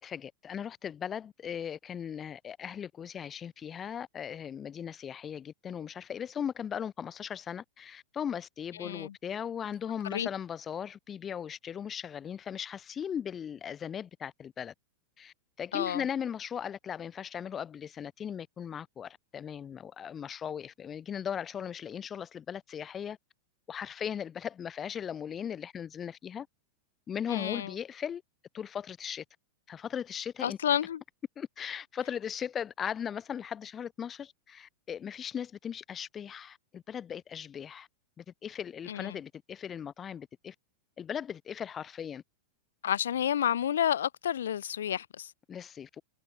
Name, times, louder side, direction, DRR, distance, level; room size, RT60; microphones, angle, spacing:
voice 1, 0.0-14.7 15.2-23.2 23.7-26.5 27.1-28.2 28.5-29.2 29.7-30.6 31.4-37.9 38.2-40.5 41.0-42.2 45.5-46.0, left 8 dB, 25° left, 5.8 m, -38 dB
voice 2, 8.8-9.1 10.1-10.3 15.7-16.0 27.3-27.7 30.4-31.0 38.9-39.2 42.8-45.3, left 10 dB, 85° left, 1.9 m, -30 dB
hypercardioid pair, 125°, 0 cm